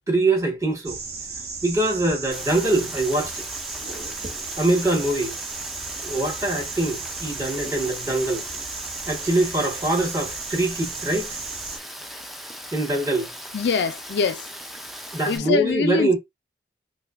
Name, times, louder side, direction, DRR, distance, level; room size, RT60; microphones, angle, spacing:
voice 1, 0.1-1.0 1.6-3.4 4.6-5.4 6.0-8.5 9.1-11.4 12.7-13.3 15.1-16.2, right 2 dB, 20° right, 1.2 m, -23 dB
sound 1, 0.8-11.8, right 4 dB, 60° right, 1.1 m, -35 dB
Rain, 2.3-15.4, equal, ahead, 0.4 m, -39 dB
voice 2, 13.5-14.5 15.2-16.2, left 5 dB, 70° left, 0.4 m, -23 dB
5.5 x 2.3 x 2.4 m
head